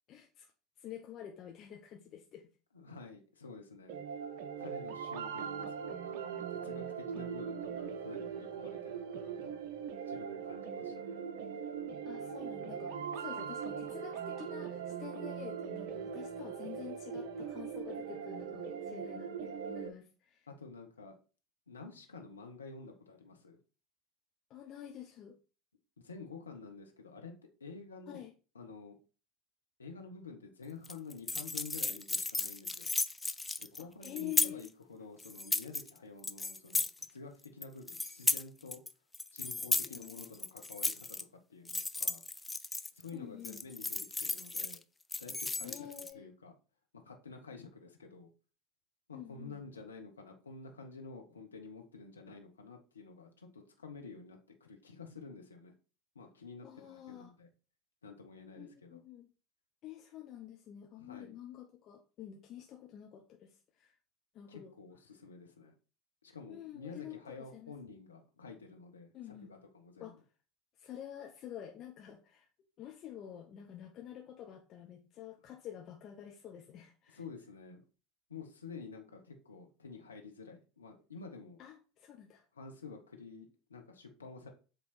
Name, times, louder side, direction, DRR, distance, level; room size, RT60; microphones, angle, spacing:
voice 1, 0.1-0.5 0.8-2.5 12.0-20.5 24.5-25.4 28.1-28.3 34.0-34.6 39.9-40.3 43.1-43.6 45.6-46.3 49.1-49.6 56.6-57.3 58.6-59.3 59.8-64.0 64.3-64.7 66.5-67.7 69.1-69.5 70.0-70.2 70.8-72.5 72.8-77.2 81.6-82.4, left 10 dB, 45° left, 1 dB, 1.0 m, -48 dB
voice 2, 2.7-4.0 4.6-9.6 10.1-11.2 20.5-21.1 21.7-23.6 26.0-27.3 27.6-28.2 28.5-29.0 29.8-32.9 33.6-36.8 37.1-38.8 39.3-41.2 41.5-42.2 42.9-44.8 45.2-45.9 46.1-46.5 46.9-48.3 49.1-55.7 56.1-57.5 58.0-59.0 61.0-61.3 64.5-65.7 66.2-70.1 77.1-77.8 78.3-81.6 82.5-84.5, left 4 dB, 80° left, 3 dB, 1.1 m, -50 dB
sound 1, 3.9-19.9, right 7 dB, 60° right, 0.7 m, -40 dB
sound 2, 30.8-34.7 35.2-35.9 36.2-37.1 37.4-38.9 39.1-41.2 41.7-43.1 43.4-44.8 45.1-46.1, left 3 dB, 10° left, 0.5 m, -35 dB
7.8 x 3.5 x 4.3 m, 0.34 s
figure-of-eight pair, 75°, 0 cm